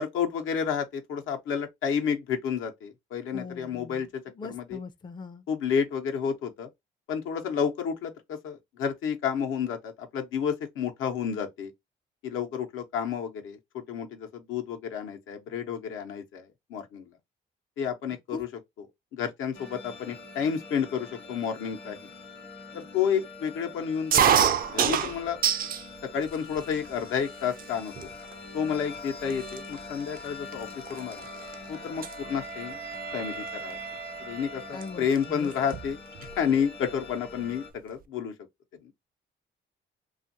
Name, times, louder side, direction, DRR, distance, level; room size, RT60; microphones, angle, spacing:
voice 1, 0.0-4.2 4.5-4.8 5.5-6.7 7.1-11.7 12.2-17.1 17.8-18.5 19.1-22.0 22.7-25.4 26.1-27.9 28.5-31.2 31.7-32.8 33.1-33.8 34.2-36.0 36.4-38.3, left 7 dB, 85° left, 0.7 m, -30 dB
voice 2, 3.3-5.4 18.3-18.4 34.7-35.5, left 4 dB, 25° left, 0.4 m, -41 dB
sound 1, 19.5-37.7, left 4 dB, 60° left, 0.9 m, -44 dB
sound 2, 24.1-25.8 26.3-26.9 27.6-27.7 27.9-28.3 29.0-29.1 29.3-31.5 31.8-32.1 33.5-33.7 34.8-34.9 35.1-35.2 35.5-36.4, right 8 dB, 45° right, 0.4 m, -26 dB
Wind instrument woodwind instrument, 31.2-35.4, right 7 dB, 85° right, 0.8 m, -42 dB
2.6 x 2.4 x 2.7 m
cardioid pair, 90°, 20 cm